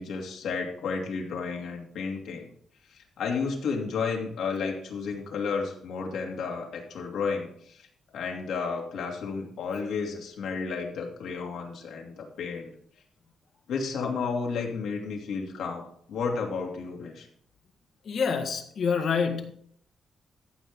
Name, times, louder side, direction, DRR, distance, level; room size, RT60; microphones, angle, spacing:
voice 1, 0.0-2.5 2.9-7.9 8.1-12.7 13.7-17.3, left 5 dB, 85° left, 0 dB, 2.6 m, -32 dB
voice 2, 18.0-19.5, left 6 dB, 55° left, 5 dB, 1.5 m, -27 dB
14.0 x 7.9 x 3.7 m, 0.64 s
wide cardioid pair, 150°, 0 cm